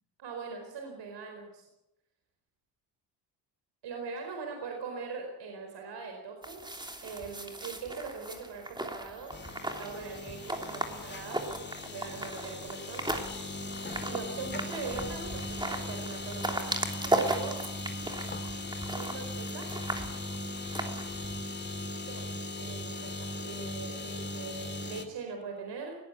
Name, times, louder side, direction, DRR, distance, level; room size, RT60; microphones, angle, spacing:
voice 1, 0.2-1.7 3.8-6.6 7.0-13.0 14.0-17.6 18.7-19.7 22.0-26.0, right 4 dB, 75° right, 3 dB, 4.7 m, -41 dB
Forest Walk, 6.4-21.4, right 1 dB, 10° right, 3.2 m, -37 dB
sound 1, 9.3-25.1, left 1 dB, 25° left, 2.7 m, -39 dB
20.5 x 17.5 x 8.3 m, 0.92 s
cardioid pair, 100°, 42 cm